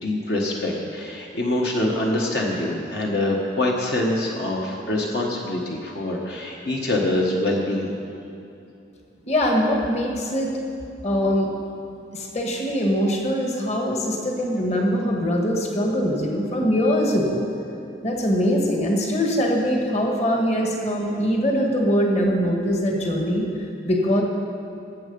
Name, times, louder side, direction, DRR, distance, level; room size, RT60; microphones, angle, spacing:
voice 1, 0.0-7.9, left 1 dB, 55° left, -2 dB, 1.3 m, -25 dB
voice 2, 9.3-10.5 11.0-11.5 12.1-17.4 18.0-23.5 23.8-24.2, equal, 35° left, -1 dB, 1.6 m, -22 dB
19.5 x 7.7 x 5.4 m, 2.7 s
head